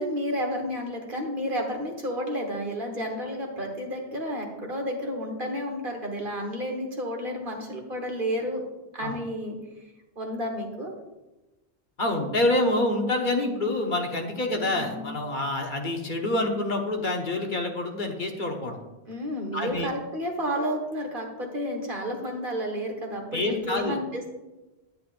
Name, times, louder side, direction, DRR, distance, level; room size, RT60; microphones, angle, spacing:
voice 1, 0.0-8.6 8.9-9.6 10.1-10.9 14.7-15.1 19.1-24.4, equal, 55° right, 1 dB, 1.6 m, -31 dB
voice 2, 12.0-18.8 19.5-19.9 23.3-24.0, left 2 dB, 50° left, 2 dB, 1.1 m, -27 dB
10.5 x 9.7 x 2.5 m, 1.1 s
omnidirectional pair, 1.1 m